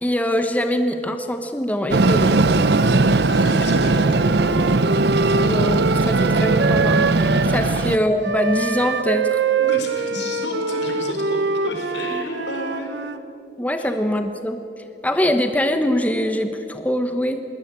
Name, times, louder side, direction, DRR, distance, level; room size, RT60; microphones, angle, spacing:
voice 1, 0.0-2.5 5.4-9.4 13.6-14.6 15.0-17.4, equal, 10° left, 7 dB, 1.0 m, -23 dB
Train, 1.9-8.0, right 3 dB, 65° right, 0.8 m, -18 dB
Wind instrument woodwind instrument, 2.5-7.5 8.2-13.2, right 4 dB, 90° right, 1.0 m, -25 dB
voice 2, 3.3-4.3 7.6-7.8 9.6-12.9 13.8-13.9, left 2 dB, 85° left, 3 dB, 4.7 m, -31 dB
21.0 x 19.0 x 8.8 m, 2.6 s
head